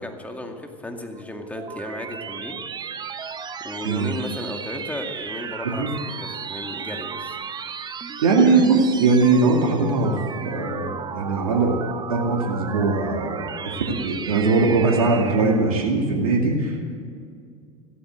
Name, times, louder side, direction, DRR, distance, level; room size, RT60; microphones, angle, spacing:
voice 1, 0.0-2.6 3.6-7.4, left 1 dB, 10° left, 4 dB, 2.2 m, -34 dB
sound 1, 1.2-15.8, right 6 dB, 25° right, 0.9 m, -35 dB
voice 2, 8.2-10.2 10.4-11.8 12.1-16.8, right 3 dB, 80° right, 1 dB, 2.2 m, -20 dB
15.0 x 12.5 x 7.6 m, 2.3 s
hypercardioid pair, 90°, 18 cm